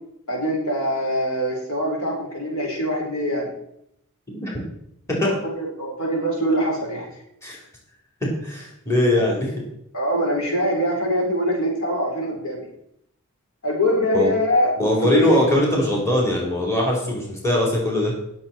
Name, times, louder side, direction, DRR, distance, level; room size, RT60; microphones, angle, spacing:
voice 1, 0.3-3.5 5.2-7.1 9.1-9.2 9.9-12.7 13.6-14.7 15.0-15.4, equal, 65° left, -1 dB, 4.6 m, -23 dB
voice 2, 4.3-4.6 5.1-5.3 7.4-7.6 8.2-9.5 14.1-14.3 14.8-18.1, left 1 dB, 15° left, -3 dB, 4.4 m, -21 dB
19.5 x 7.5 x 4.6 m, 0.76 s
head